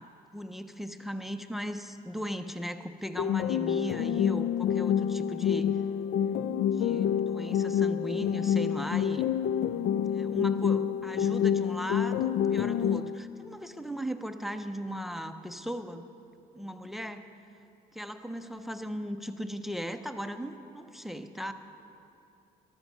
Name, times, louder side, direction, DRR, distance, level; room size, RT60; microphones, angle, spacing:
voice 1, 0.0-5.8 6.8-9.3 10.1-16.1 16.5-17.3 17.9-21.5, equal, ahead, 9 dB, 0.5 m, -37 dB
sound 1, 3.2-13.2, left 9 dB, 70° left, 0.4 m, -28 dB
13.5 x 13.0 x 6.0 m, 2.8 s
cardioid pair, 145°, 17 cm